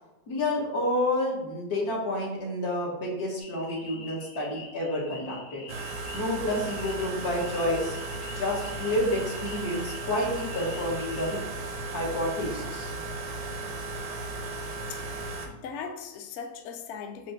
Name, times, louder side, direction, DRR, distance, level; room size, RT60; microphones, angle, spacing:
voice 1, 0.3-5.6 6.1-8.0 8.4-11.4 11.9-12.9, left 1 dB, 90° left, -4 dB, 1.8 m, -29 dB
sound 1, 3.4-11.4, left 4 dB, 30° left, 0.5 m, -47 dB
sound 2, 5.7-15.5, right 2 dB, 85° right, 1.2 m, -36 dB
voice 2, 14.9-17.3, left 6 dB, 65° left, 5 dB, 0.7 m, -39 dB
7.5 x 2.6 x 2.6 m, 1.0 s
omnidirectional pair, 1.6 m